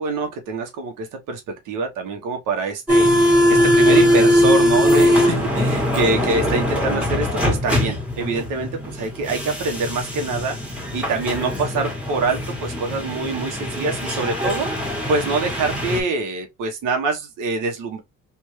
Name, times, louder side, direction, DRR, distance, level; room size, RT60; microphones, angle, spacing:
voice 1, 0.0-18.0, right 3 dB, 85° right, 1.3 m, -25 dB
sound 1, 2.9-16.0, left 1 dB, 5° right, 1.6 m, -20 dB
3.5 x 2.6 x 3.1 m
cardioid pair, 120°, 31 cm